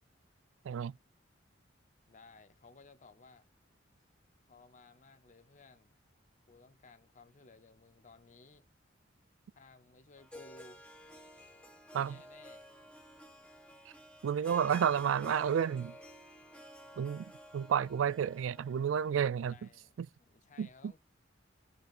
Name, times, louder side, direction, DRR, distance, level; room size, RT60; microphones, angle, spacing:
voice 1, 0.6-1.0 11.9-12.2 14.2-16.0 17.0-19.7 20.0-20.1 20.6-20.9, right 8 dB, 70° right, 0.3 m, -31 dB
voice 2, 2.1-3.5 4.5-6.0 6.5-8.7 9.5-10.8 11.9-12.7 19.1-19.9 20.2-21.0, left 3 dB, 40° left, 0.8 m, -58 dB
Harp, 10.2-19.2, equal, 5° left, 1.6 m, -52 dB
15.0 x 5.2 x 2.5 m
head